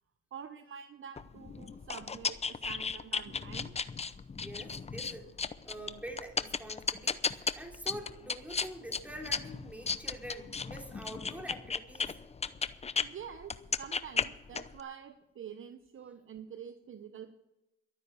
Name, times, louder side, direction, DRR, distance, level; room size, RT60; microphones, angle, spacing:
voice 1, 0.3-3.8 13.0-17.3, right 8 dB, 40° right, 10 dB, 1.0 m, -47 dB
sound 1, 1.2-13.1 13.4-14.8, left 5 dB, 20° left, 0.7 m, -35 dB
voice 2, 4.4-5.4 5.6-12.2, right 1 dB, 5° right, 1 dB, 3.6 m, -45 dB
12.5 x 9.7 x 7.0 m, 0.92 s
supercardioid pair, 75°, 30 cm